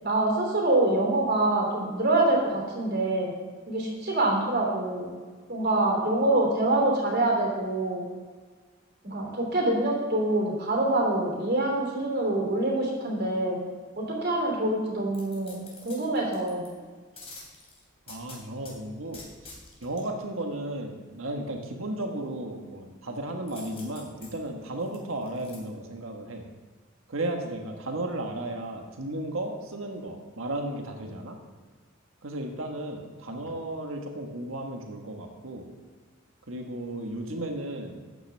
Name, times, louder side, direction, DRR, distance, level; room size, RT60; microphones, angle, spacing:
voice 1, 0.0-3.3 3.7-5.1 5.5-8.0 9.0-13.6 13.9-16.6, right 2 dB, 50° right, -1 dB, 3.2 m, -25 dB
sound 1, 15.1-16.7 17.2-18.7 19.1-20.0 23.5-25.6 26.0-26.1, left 3 dB, 30° left, 2.9 m, -47 dB
voice 2, 18.1-26.5 27.1-31.4 32.2-35.7 36.5-38.0, right 1 dB, 75° right, 2 dB, 1.5 m, -34 dB
13.0 x 9.2 x 3.5 m, 1.5 s
head